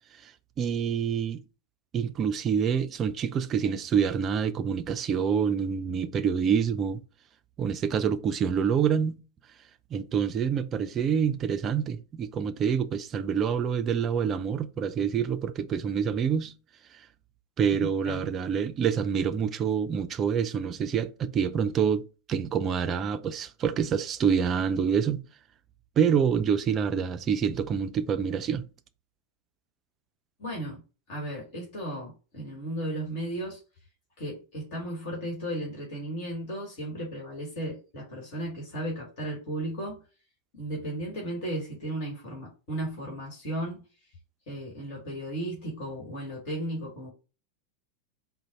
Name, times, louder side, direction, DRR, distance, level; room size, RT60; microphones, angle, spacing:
voice 1, 0.6-1.4 1.9-7.0 7.6-9.2 9.9-16.5 17.6-25.2 26.0-28.7, right 7 dB, 30° right, 0.3 m, -27 dB
voice 2, 30.4-30.8 31.1-33.6 34.2-40.0 40.5-43.8 44.5-47.1, right 1 dB, 45° left, 1.6 m, -35 dB
3.8 x 2.1 x 4.1 m
figure-of-eight pair, 90°, 0 cm